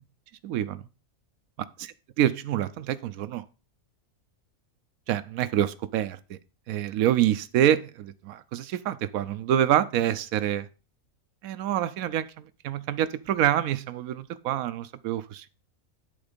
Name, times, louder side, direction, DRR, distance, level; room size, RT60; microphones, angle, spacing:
voice 1, 0.4-0.8 2.2-3.4 5.1-6.4 6.7-10.7 11.4-15.5, right 11 dB, 80° right, 1.1 m, -26 dB
10.5 x 3.9 x 5.1 m
omnidirectional pair, 1.4 m